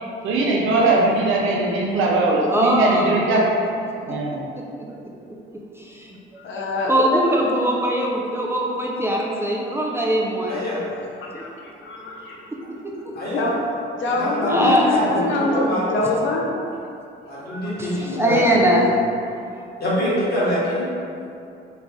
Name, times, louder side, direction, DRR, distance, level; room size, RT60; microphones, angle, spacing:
voice 1, 0.2-3.5 4.1-4.4, right 2 dB, 85° right, -2 dB, 0.6 m, -20 dB
voice 2, 2.5-3.2 4.6-4.9 5.8-6.4 6.8-10.6 11.3-11.4 12.8-12.9 14.5-14.8 17.5-19.4, right 1 dB, 10° right, -3 dB, 0.4 m, -21 dB
voice 3, 6.4-7.6 11.2-12.5 13.3-13.6 14.0-16.5, left 2 dB, 75° left, -3 dB, 0.7 m, -25 dB
voice 4, 10.5-10.9 13.1-13.5 14.2-16.3 17.3-18.5 19.8-20.9, equal, 55° left, -8 dB, 1.4 m, -25 dB
3.2 x 2.5 x 3.5 m, 2.6 s
cardioid pair, 90°, 20 cm